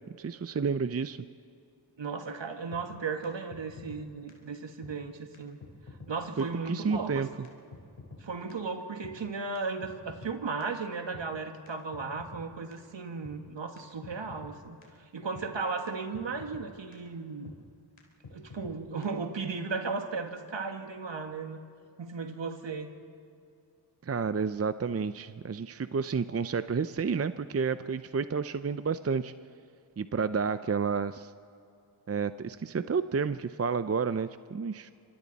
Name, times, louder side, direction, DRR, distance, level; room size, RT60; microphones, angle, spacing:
voice 1, 0.2-1.2 6.4-7.3 24.0-29.3 30.0-31.3 32.1-34.9, right 5 dB, 30° right, 12 dB, 0.6 m, -30 dB
voice 2, 2.0-5.6 6.1-7.3 8.2-17.5 18.3-21.6 22.0-22.9, right 4 dB, 60° right, 5 dB, 1.9 m, -36 dB
sound 1, 2.7-2.8 3.2-3.3 3.5-4.0 4.3-4.4 4.8-4.9 5.3-5.4 5.6-6.1 6.4-6.5 6.9-7.0 7.4-7.5 7.7-8.2 8.5-8.6 9.0-9.1 9.6-10.3 10.6-10.7 11.1-11.3 11.7-11.8 11.9-12.4 12.7-12.8 13.2-13.4 13.8-13.9 14.0-14.5 14.8-14.9 15.3-15.5 15.9-16.6 16.9-17.0 17.5-17.6 18.0-18.1 18.2-18.8 19.0-19.1, left 3 dB, 80° left, 4.1 m, -47 dB
26.5 x 25.5 x 4.2 m, 2.5 s
cardioid pair, 60°, 49 cm